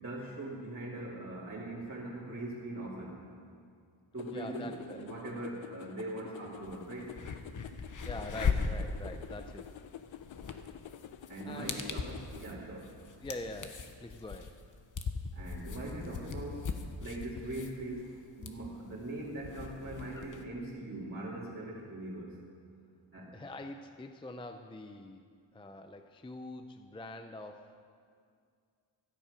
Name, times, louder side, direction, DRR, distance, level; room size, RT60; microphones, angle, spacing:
voice 1, 0.0-3.2 4.1-7.1 11.3-13.3 15.3-18.1 18.4-22.4 23.1-23.3, right 2 dB, 25° right, -8 dB, 2.4 m, -41 dB
sound 1, 4.2-12.5, left 10 dB, 70° left, 0.7 m, -49 dB
voice 2, 4.3-5.1 8.0-9.7 11.4-12.0 13.2-14.5 23.3-25.3 25.5-27.8, left 1 dB, 10° left, 7 dB, 0.5 m, -44 dB
sound 2, 6.6-6.7 7.1-20.4, left 5 dB, 40° left, 1.0 m, -39 dB
17.0 x 12.5 x 5.1 m, 2.2 s
wide cardioid pair, 150°, 49 cm